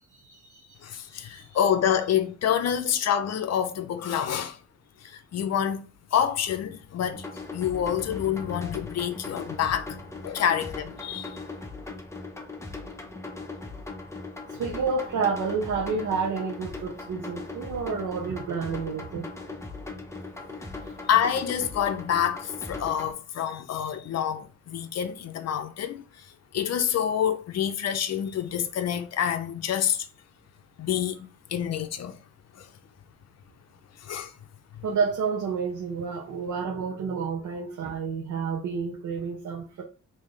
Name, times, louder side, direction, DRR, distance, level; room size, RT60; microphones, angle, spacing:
voice 1, 0.3-0.7 1.3-1.4 14.6-19.3 34.8-39.8, right 5 dB, 75° right, 0.7 m, -29 dB
voice 2, 0.8-4.6 5.0-5.8 6.1-10.0 10.2-11.4 21.1-26.3 26.5-30.1 30.8-32.2 32.6-32.7 34.0-34.3, left 9 dB, 60° left, 0.5 m, -27 dB
sound 1, 7.1-23.1, left 3 dB, 10° left, 0.5 m, -39 dB
3.2 x 2.7 x 3.7 m
wide cardioid pair, 150°, 30 cm